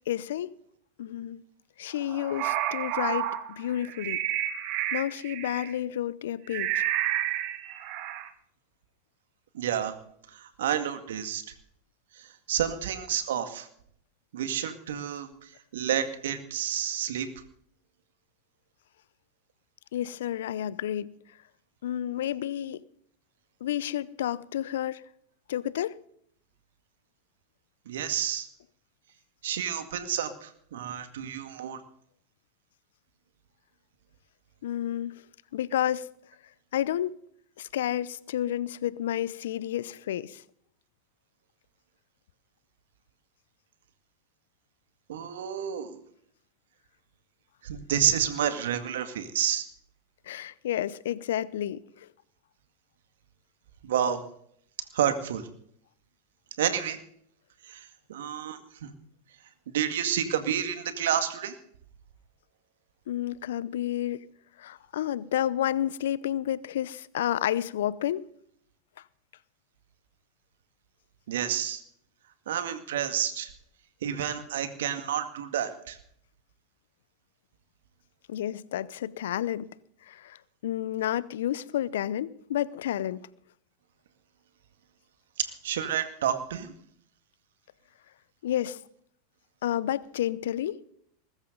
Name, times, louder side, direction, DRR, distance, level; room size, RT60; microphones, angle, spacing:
voice 1, 0.1-0.5 1.0-1.4 1.8-4.2 4.9-6.7 19.9-21.1 21.8-22.8 23.6-25.0 25.5-26.0 34.6-35.1 35.5-36.1 36.7-37.2 37.6-40.4 50.3-52.1 63.1-64.2 64.6-68.2 78.3-79.7 80.1-83.2 88.4-88.8 89.6-90.7, left 11 dB, 70° left, 0.7 m, -30 dB
sound 1, 2.0-5.7 6.5-8.3, right 12 dB, 50° right, 1.7 m, -30 dB
voice 2, 9.5-9.9 10.3-11.4 12.5-13.7 14.3-15.3 15.7-17.3 27.9-28.5 29.4-31.8 45.1-46.0 47.6-49.7 53.8-54.2 54.9-55.5 56.6-57.0 57.7-58.9 59.7-61.5 71.3-71.8 72.5-73.5 74.0-76.0 85.4-86.7, right 9 dB, 70° right, 2.0 m, -29 dB
20.5 x 13.5 x 4.0 m
hypercardioid pair, 95°, 0 cm